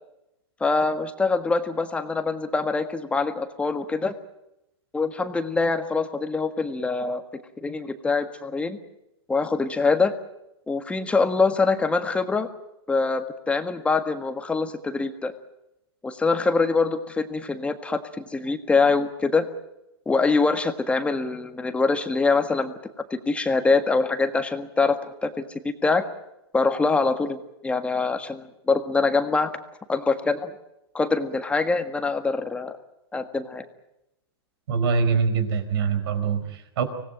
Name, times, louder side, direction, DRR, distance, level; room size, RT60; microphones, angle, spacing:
voice 1, 0.6-4.1 4.9-7.2 7.6-8.8 9.3-10.1 10.7-12.5 12.9-15.3 16.0-19.5 20.0-22.7 23.1-26.0 26.5-27.4 27.6-29.5 29.9-30.5 30.9-32.8 33.1-33.6, left 4 dB, 10° left, 8 dB, 1.6 m, -24 dB
voice 2, 34.7-36.8, right 5 dB, 60° right, 10 dB, 4.6 m, -24 dB
25.0 x 18.5 x 9.1 m, 0.87 s
hypercardioid pair, 135°, 14 cm